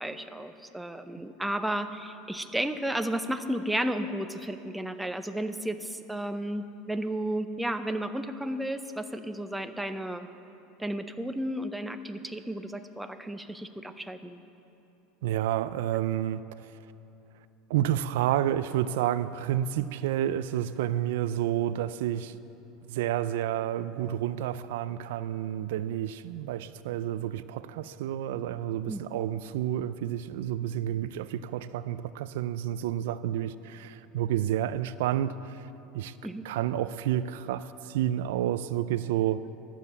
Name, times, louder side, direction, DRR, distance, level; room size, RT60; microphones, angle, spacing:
voice 1, 0.0-10.3 10.8-14.4 28.9-29.0 36.2-36.4, right 1 dB, 5° right, 0.6 m, -33 dB
voice 2, 15.2-16.8 17.7-22.4 22.9-35.7 35.9-36.2 36.4-39.4, right 11 dB, 85° right, 0.3 m, -30 dB
12.0 x 7.4 x 8.1 m
supercardioid pair, 125°, 0 cm